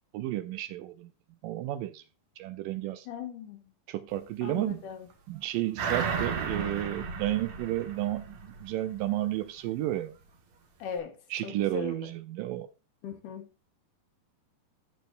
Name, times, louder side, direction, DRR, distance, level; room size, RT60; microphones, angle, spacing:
voice 1, 0.1-1.1 1.4-2.0 2.4-3.1 3.9-4.8 5.3-10.2 11.3-12.7, right 14 dB, 80° right, 2.1 m, -32 dB
voice 2, 3.1-3.6 4.4-5.1 10.8-11.2 11.4-12.0 13.0-13.5, left 7 dB, 70° left, 2.5 m, -38 dB
sound 1, 5.8-8.7 9.1-9.2, right 5 dB, 55° right, 2.3 m, -33 dB
15.0 x 6.1 x 2.5 m
omnidirectional pair, 4.2 m